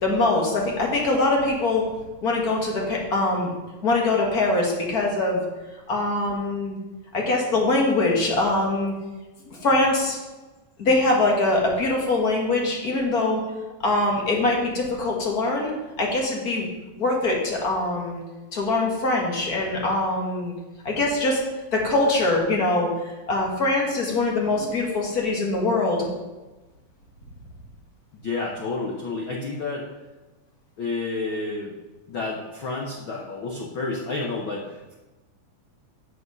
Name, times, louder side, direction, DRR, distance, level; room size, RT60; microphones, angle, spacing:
voice 1, 0.0-1.9 2.2-3.5 3.8-5.4 5.9-6.8 7.1-8.9 9.6-10.2 10.8-13.4 13.8-15.7 16.0-16.7 17.0-18.2 18.5-20.5 20.8-21.4 21.7-22.9 23.3-26.1, left 2 dB, 40° left, 0 dB, 1.6 m, -23 dB
voice 2, 28.2-29.9 30.8-31.8 32.1-34.9, left 3 dB, 70° left, -1 dB, 1.2 m, -30 dB
8.7 x 7.1 x 5.5 m, 1.1 s
omnidirectional pair, 3.7 m